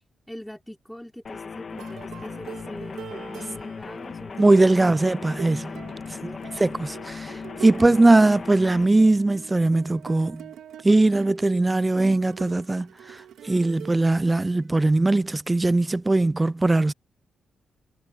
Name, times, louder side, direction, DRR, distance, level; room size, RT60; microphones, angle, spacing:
voice 1, 0.3-5.0 5.6-6.6, left 1 dB, 5° left, 3.7 m, -43 dB
sound 1, 1.2-8.9, left 5 dB, 45° left, 1.7 m, -37 dB
sound 2, 1.8-14.9, right 9 dB, 85° right, 2.3 m, -44 dB
voice 2, 4.4-5.7 6.2-10.5 10.8-13.2 13.4-16.9, right 2 dB, 20° right, 0.3 m, -20 dB
cardioid pair, 100°, 0 cm